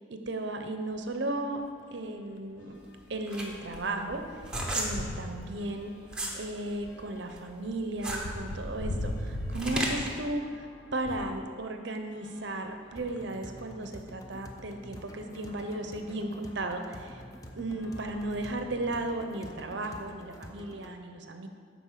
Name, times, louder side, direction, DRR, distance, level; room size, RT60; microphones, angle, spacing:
voice 1, 0.1-1.6 1.9-2.8 3.1-4.2 4.7-5.9 6.3-17.2 17.5-21.5, right 2 dB, 60° right, 6 dB, 0.7 m, -35 dB
sound 1, 0.9-1.1 1.5-1.7 1.9-11.4 12.1-13.5 14.2-14.3 14.5-14.6 16.3-16.4 17.0-17.3 17.7-19.0, left 1 dB, 85° left, 0.8 m, -41 dB
sound 2, 2.8-6.4 6.8-10.2, right 1 dB, 5° right, 1.0 m, -35 dB
sound 3, 13.0-21.0, equal, 15° left, 0.6 m, -47 dB
11.0 x 4.4 x 7.3 m, 2.1 s
head